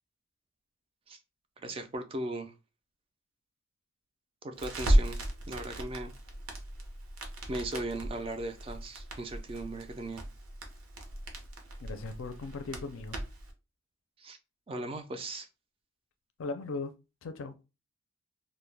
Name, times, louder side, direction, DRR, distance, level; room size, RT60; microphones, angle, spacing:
voice 1, 1.6-2.5 4.4-5.2 5.5-6.1 7.5-10.2 14.2-14.4 14.7-15.5, right 2 dB, 25° right, 0.3 m, -37 dB
Crackle, 4.6-13.5, right 1 dB, 85° right, 0.7 m, -34 dB
voice 2, 11.8-13.2 16.4-16.9 17.2-17.6, left 3 dB, 70° left, 0.4 m, -38 dB
2.2 x 2.1 x 3.2 m
head